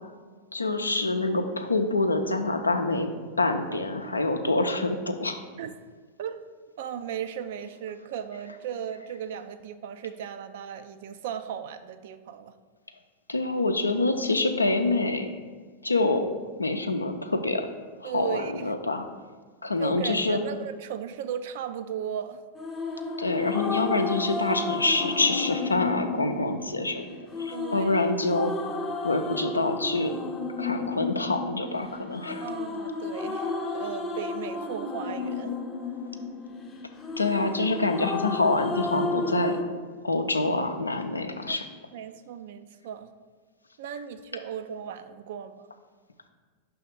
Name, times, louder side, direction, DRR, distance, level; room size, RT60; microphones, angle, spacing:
voice 1, 0.5-3.1 3.4-5.4 13.3-15.3 15.8-16.2 16.6-17.7 18.0-19.0 19.6-20.4 23.2-28.5 29.0-30.1 30.6-32.4 37.2-39.6 40.0-41.6, left 2 dB, 80° left, 6 dB, 0.5 m, -26 dB
voice 2, 4.0-4.5 5.6-5.7 6.2-6.5 6.8-12.5 18.0-18.7 19.8-22.4 27.5-28.1 32.4-35.6 41.5-41.6 41.9-43.1 43.8-45.7, right 8 dB, 55° right, 10 dB, 0.3 m, -36 dB
sound 1, 22.6-39.6, left 3 dB, 20° left, 0.6 m, -33 dB
5.7 x 3.5 x 5.3 m, 1.5 s
figure-of-eight pair, 90°, 0 cm